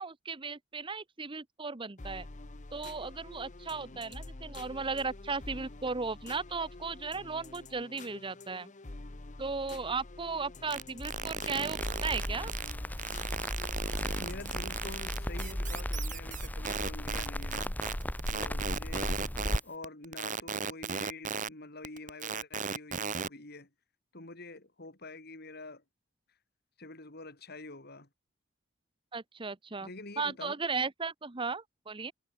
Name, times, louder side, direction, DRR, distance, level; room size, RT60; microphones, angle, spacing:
voice 1, 0.0-2.3 2.7-8.7 9.4-12.5 29.1-29.9 30.2-32.1, right 4 dB, 25° right, 0.9 m, -36 dB
sound 1, 2.0-15.8, left 2 dB, 40° left, 1.1 m, -47 dB
sound 2, 10.7-12.7 13.0-21.5 21.8-23.3, right 6 dB, 40° right, 1.2 m, -35 dB
Crackle, 11.8-19.6, equal, 10° left, 1.1 m, -36 dB
voice 2, 14.2-17.8 18.3-19.1 19.4-23.7 24.1-25.8 26.8-28.1 29.8-30.6, left 2 dB, 55° left, 4.3 m, -46 dB
head